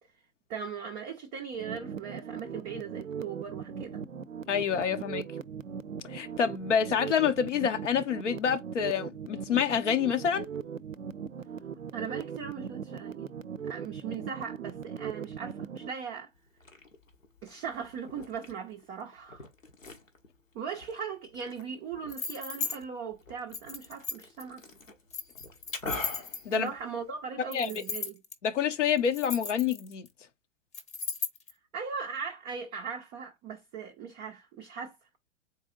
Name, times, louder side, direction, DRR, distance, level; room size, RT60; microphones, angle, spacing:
voice 1, 0.5-4.1 11.9-13.3 13.7-16.3 17.4-19.5 20.5-24.6 26.5-28.2 31.7-35.0, right 6 dB, 15° right, 0.4 m, -39 dB
sound 1, 1.5-15.9, right 7 dB, 90° right, 0.5 m, -39 dB
voice 2, 4.5-5.2 6.1-10.5 26.4-26.7 27.5-27.8 28.4-30.1, left 7 dB, 70° left, 0.7 m, -27 dB
Liquid, 16.3-27.3, left 2 dB, 85° left, 1.2 m, -46 dB
sound 2, 22.1-22.8 23.5-24.4 25.1-26.7 27.5-28.3 29.0-30.1 30.7-31.5, left 5 dB, 15° left, 0.8 m, -36 dB
4.2 x 2.6 x 3.7 m
figure-of-eight pair, 100°, 38 cm